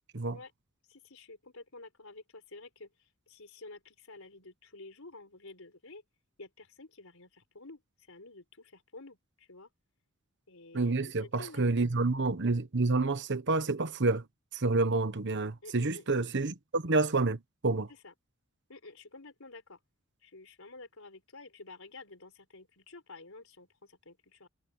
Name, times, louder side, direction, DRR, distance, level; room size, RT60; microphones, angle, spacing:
voice 1, 0.9-6.0 6.4-9.7 10.5-11.6 15.6-16.0 17.9-18.1 18.7-19.8 20.2-24.5, left 3 dB, 75° left, 4.8 m, -51 dB
voice 2, 10.7-14.2 14.5-17.9, right 3 dB, 60° right, 1.2 m, -29 dB
head